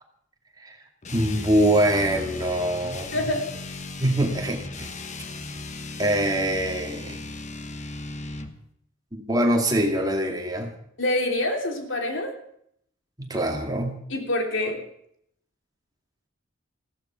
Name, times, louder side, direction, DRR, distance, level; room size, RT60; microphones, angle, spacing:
sound 1, 1.0-8.6, left 2 dB, 35° left, 1.2 m, -36 dB
voice 1, 1.1-3.3 4.0-4.9 6.0-7.2 9.1-10.8 13.2-14.0, right 1 dB, 20° right, 2 dB, 2.4 m, -24 dB
voice 2, 3.1-3.4 11.0-12.3 14.1-14.8, left 1 dB, 65° left, 3 dB, 3.0 m, -26 dB
15.5 x 13.5 x 5.9 m, 0.69 s
head